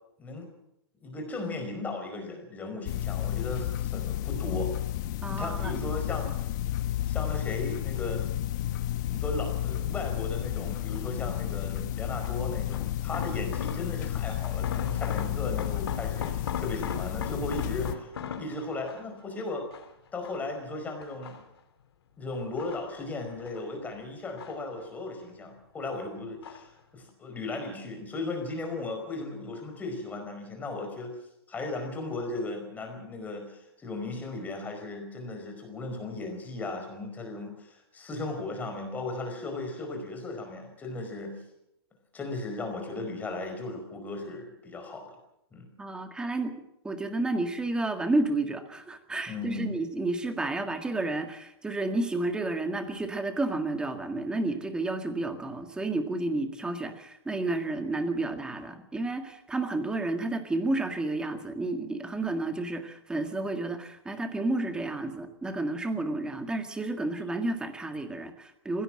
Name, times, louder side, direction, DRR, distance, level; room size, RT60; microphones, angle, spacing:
voice 1, 1.0-4.7 5.3-6.5 7.1-8.4 9.1-18.1 18.4-19.7 20.1-21.4 22.2-31.1 31.5-41.3 42.1-45.2 45.5-45.7 49.3-49.8, left 2 dB, 10° left, 4 dB, 4.9 m, -36 dB
sound 1, 2.9-18.0, left 12 dB, 45° left, 1.4 m, -31 dB
voice 2, 5.2-5.8 45.8-46.5 46.8-68.8, right 2 dB, 5° right, 7 dB, 1.8 m, -31 dB
sound 2, 11.0-11.3 12.2-14.1 14.4-19.2 19.7-20.6 21.0-21.8 22.3-23.7 24.0-25.1 25.4-26.0 26.4-26.8 27.1-27.2, left 7 dB, 80° left, 3.3 m, -40 dB
21.0 x 17.0 x 7.7 m, 0.81 s
hypercardioid pair, 150°, 13 cm